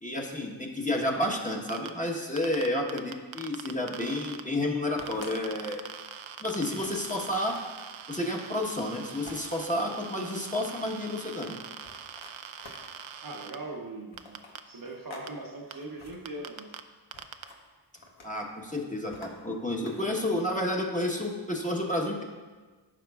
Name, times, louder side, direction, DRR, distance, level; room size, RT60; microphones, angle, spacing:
voice 1, 0.0-5.8 6.4-7.5 8.1-11.6 18.2-22.2, left 1 dB, 15° left, -1 dB, 1.1 m, -30 dB
sound 1, 1.7-1.9 2.4-4.4 5.0-13.6 14.2-14.6 15.3-15.4 15.7-15.8 16.3-16.8 17.1-17.4, right 8 dB, 85° right, 0.5 m, -43 dB
sound 2, 5.0-5.9 6.3-6.4 6.8-7.9 9.3-9.8 10.4-11.1 11.8-13.2 14.1-15.3 15.6-16.2 17.1-17.6 18.0-18.5 19.1-20.3, left 2 dB, 85° left, 1.2 m, -49 dB
voice 2, 13.2-14.4 14.7-16.7, right 2 dB, 45° right, 1 dB, 0.8 m, -40 dB
14.0 x 5.8 x 2.4 m, 1.4 s
wide cardioid pair, 90°, 46 cm